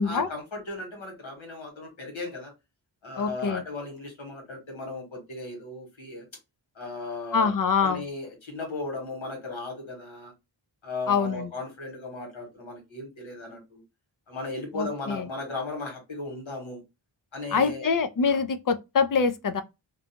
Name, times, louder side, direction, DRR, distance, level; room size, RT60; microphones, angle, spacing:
voice 1, 0.0-2.5 3.0-6.2 6.7-7.5 7.8-10.3 10.8-13.8 14.3-16.8 17.3-17.9 18.2-18.4, left 2 dB, 85° left, 1.4 m, -36 dB
voice 2, 3.2-3.6 7.3-8.0 11.1-11.5 14.7-15.2 17.5-19.6, left 5 dB, 45° left, 0.5 m, -25 dB
2.6 x 2.2 x 2.7 m
wide cardioid pair, 80°, 46 cm